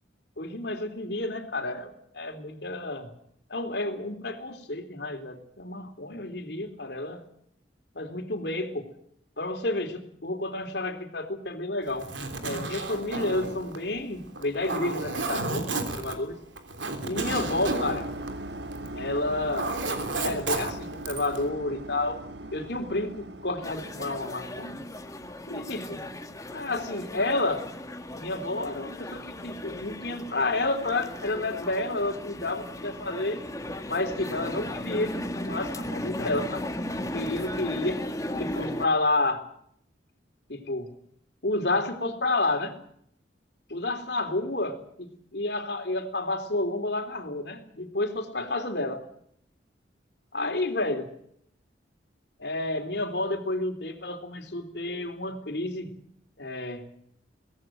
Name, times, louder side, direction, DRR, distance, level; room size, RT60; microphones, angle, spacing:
voice 1, 0.4-3.1 3.5-7.2 8.0-8.9 9.4-12.1 12.4-15.7 16.0-16.4 17.0-18.1 18.9-19.7 20.2-22.2 22.5-24.8 25.5-26.0 26.5-27.6 28.1-33.4 33.9-36.7 37.0-38.0 38.4-39.4 40.5-40.9 41.4-42.7 43.7-49.0 50.3-51.1 52.4-55.9 56.4-56.8, left 2 dB, 65° left, 7 dB, 3.5 m, -30 dB
Zipper (clothing), 11.9-19.0 19.3-21.4, right 3 dB, 85° right, 3.3 m, -32 dB
sound 1, 17.1-24.8, right 2 dB, 65° right, 1.2 m, -39 dB
sound 2, 23.6-38.9, left 1 dB, 20° left, 1.8 m, -36 dB
23.5 x 18.0 x 7.7 m, 0.68 s
head